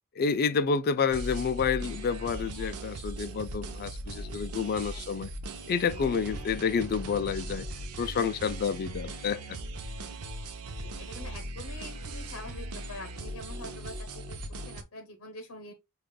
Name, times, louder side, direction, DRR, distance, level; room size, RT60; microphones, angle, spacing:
voice 1, 0.2-5.3 5.7-7.7 8.0-9.4, left 6 dB, 45° left, 0.3 m, -29 dB
sound 1, 1.1-14.8, right 1 dB, 80° right, 0.6 m, -39 dB
voice 2, 6.1-6.4 10.8-15.7, left 2 dB, 65° left, 0.7 m, -45 dB
5.0 x 2.3 x 2.2 m
head